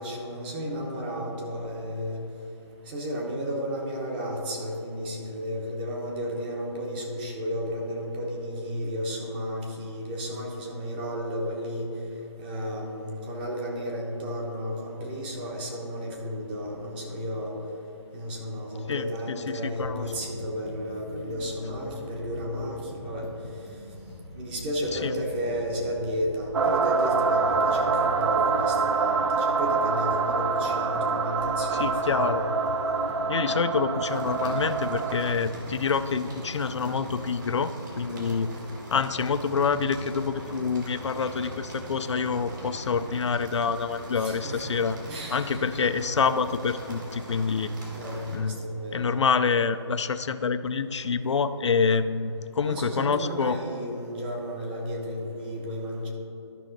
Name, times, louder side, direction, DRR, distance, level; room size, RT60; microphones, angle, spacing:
voice 1, 0.0-2.2 2.9-11.9 12.4-17.5 18.1-23.3 24.3-32.5 38.0-38.4 44.1-44.6 45.1-45.7 47.9-49.1 52.6-56.1, equal, 20° right, 0 dB, 1.0 m, -33 dB
voice 2, 18.9-20.0 24.9-25.1 31.7-32.4 33.3-38.5 38.9-45.0 45.3-47.7 48.3-48.6 48.9-53.6, left 5 dB, 75° left, 11 dB, 0.4 m, -27 dB
sound 1, 19.8-34.7, left 1 dB, ahead, 0.5 m, -43 dB
sound 2, 26.5-35.3, right 4 dB, 70° right, 0.4 m, -26 dB
sound 3, 34.0-48.4, right 1 dB, 40° right, 1.9 m, -41 dB
12.0 x 5.5 x 4.0 m, 3.0 s
hypercardioid pair, 160°, 15 cm